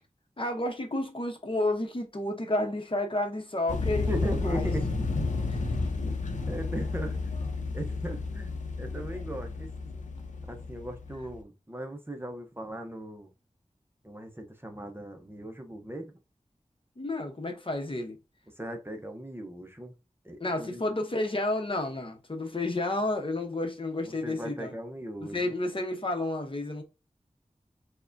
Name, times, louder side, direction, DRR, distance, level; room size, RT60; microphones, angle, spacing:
voice 1, 0.4-4.7 5.5-5.7 17.0-18.2 20.4-24.7 25.3-26.8, left 2 dB, 45° left, 0.8 m, -31 dB
sound 1, 3.7-11.4, left 3 dB, 75° left, 0.6 m, -32 dB
voice 2, 4.1-5.1 6.5-7.2 7.7-8.5 8.8-9.7 10.5-13.3 14.0-16.2 18.6-19.9 20.2-20.8 24.0-25.5, right 1 dB, 20° right, 0.6 m, -38 dB
4.7 x 2.2 x 2.5 m
wide cardioid pair, 45°, 13 cm